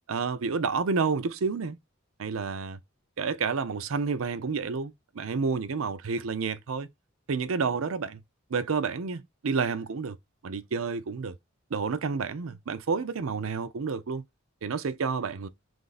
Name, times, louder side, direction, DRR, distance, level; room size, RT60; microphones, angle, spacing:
voice 1, 0.1-1.8 2.2-2.8 3.2-6.9 7.3-8.2 8.5-10.2 10.4-11.4 11.7-14.2 14.6-15.5, right 5 dB, 85° right, 0.5 m, -30 dB
3.3 x 2.6 x 3.9 m
head